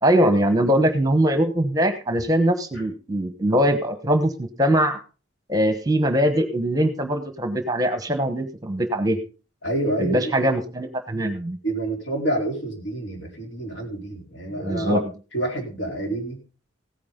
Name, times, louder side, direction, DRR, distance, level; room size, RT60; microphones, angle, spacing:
voice 1, 0.0-5.0 5.5-9.2 10.0-11.6 14.5-15.0, equal, 20° right, 8 dB, 1.1 m, -22 dB
voice 2, 9.6-10.5 11.6-15.0 15.3-16.4, right 1 dB, 65° left, 1 dB, 4.2 m, -28 dB
16.0 x 9.6 x 3.8 m, 0.33 s
head